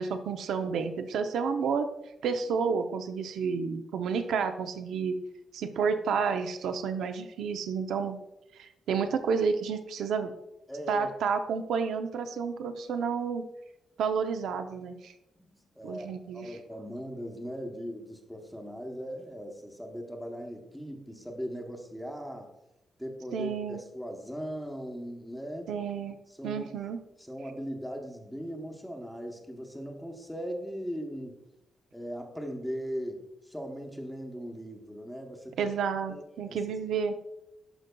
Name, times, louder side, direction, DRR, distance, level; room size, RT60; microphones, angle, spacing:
voice 1, 0.0-1.9 2.2-5.2 5.5-8.2 8.5-10.3 10.9-13.4 14.0-15.1 15.8-16.6 23.3-23.8 25.7-26.2 26.4-27.0 35.6-37.2, right 6 dB, 85° right, 7 dB, 0.6 m, -30 dB
voice 2, 10.7-11.1 15.8-22.5 23.0-25.7 26.3-26.7 27.2-31.4 31.9-35.7 36.1-36.8, equal, ahead, 2 dB, 0.8 m, -39 dB
12.0 x 5.3 x 2.2 m, 0.88 s
wide cardioid pair, 175°, 0 cm